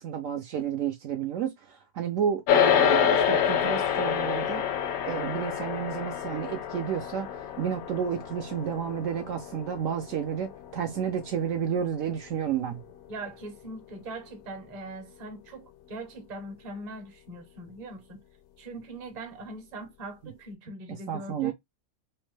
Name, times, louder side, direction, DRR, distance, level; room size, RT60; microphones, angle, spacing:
voice 1, 0.0-4.6 5.1-12.8 21.1-21.5, right 8 dB, 70° right, 0.9 m, -31 dB
sound 1, 2.5-12.0, left 8 dB, 80° left, 1.0 m, -27 dB
voice 2, 13.1-18.2 18.6-21.5, right 2 dB, 35° right, 0.7 m, -41 dB
3.3 x 2.1 x 3.1 m
omnidirectional pair, 1.5 m